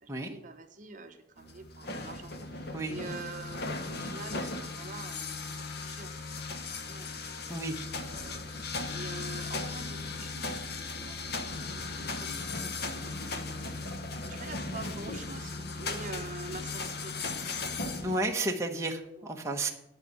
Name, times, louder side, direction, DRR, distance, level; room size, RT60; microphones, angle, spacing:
voice 1, 0.0-6.1 6.5-7.1 7.9-10.6 11.0-11.5 11.7-13.2 13.7-13.9 14.2-17.7 19.2-19.3, right 3 dB, 40° right, 6 dB, 0.9 m, -46 dB
sound 1, 1.4-18.2, left 3 dB, 55° left, 1.0 m, -37 dB
voice 2, 18.0-19.7, right 2 dB, 15° right, 1 dB, 0.9 m, -32 dB
10.5 x 5.4 x 8.1 m, 0.85 s
head